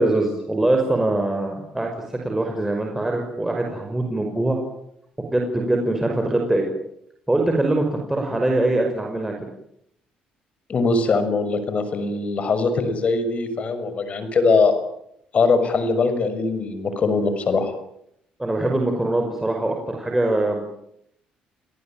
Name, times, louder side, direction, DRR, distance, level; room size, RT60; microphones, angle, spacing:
voice 1, 0.0-4.6 5.3-6.7 7.3-9.3 18.4-20.6, right 2 dB, 10° right, 2 dB, 5.6 m, -22 dB
voice 2, 10.7-14.7 15.3-17.7, left 4 dB, 45° left, 10 dB, 6.4 m, -21 dB
30.0 x 18.5 x 9.0 m, 0.76 s
cardioid pair, 95°, 3 cm